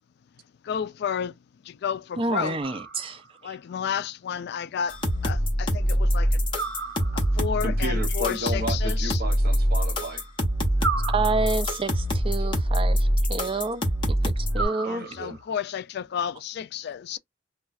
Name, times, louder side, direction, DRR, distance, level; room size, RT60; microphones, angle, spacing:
voice 1, 0.6-1.3 1.6-2.6 3.4-6.4 7.1-9.2 14.8-17.2, left 8 dB, 60° left, 0.3 m, -31 dB
voice 2, 2.2-3.2 11.1-13.8 14.1-15.0, right 3 dB, 30° right, 0.5 m, -29 dB
sound 1, 2.6-3.5 6.5-7.6 10.8-11.9 14.5-15.5, right 4 dB, 85° right, 0.9 m, -33 dB
sound 2, 4.9-14.6, equal, 25° left, 0.9 m, -24 dB
voice 3, 7.6-10.2 12.4-12.5 15.0-15.4, right 1 dB, 55° right, 0.8 m, -33 dB
2.4 x 2.2 x 4.0 m
head